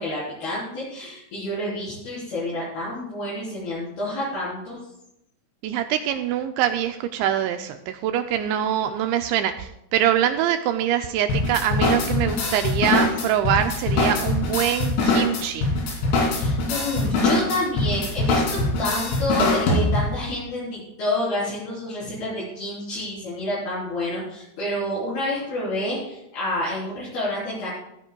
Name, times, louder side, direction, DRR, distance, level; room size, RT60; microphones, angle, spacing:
voice 1, 0.0-4.8 16.3-27.7, left 1 dB, 55° left, -10 dB, 5.3 m, -29 dB
voice 2, 5.6-15.7, right 10 dB, 85° right, 7 dB, 2.7 m, -24 dB
sound 1, 11.3-20.2, left 2 dB, 75° left, 5.3 m, -23 dB
15.5 x 14.5 x 2.3 m, 0.82 s
omnidirectional pair, 5.7 m